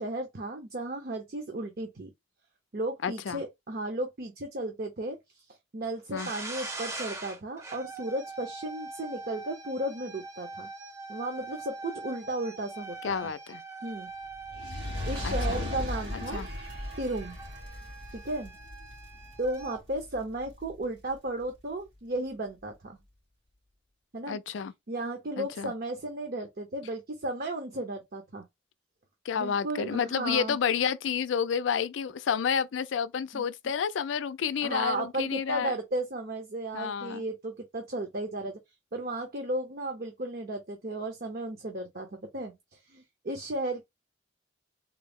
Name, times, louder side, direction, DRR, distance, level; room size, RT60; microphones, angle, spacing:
voice 1, 0.0-2.1 2.7-5.2 5.7-10.7 11.1-13.3 13.8-14.1 15.1-16.4 17.0-17.4 18.1-18.5 19.4-23.0 24.1-24.4 24.9-28.4 29.4-30.6 33.3-33.4 34.6-38.6 38.9-42.5 42.9-43.8, right 1 dB, 55° right, 0.7 m, -34 dB
voice 2, 3.0-3.4 6.1-6.3 13.0-13.6 15.2-15.6 16.1-16.5 24.3-24.7 25.4-25.7 29.3-35.8 36.7-37.2, left 7 dB, 85° left, 0.4 m, -30 dB
sound 1, 6.2-19.8, right 3 dB, 15° right, 0.6 m, -43 dB
Fire, 14.4-20.8 21.5-21.6, left 1 dB, 80° right, 2.3 m, -37 dB
3.7 x 2.0 x 3.4 m
head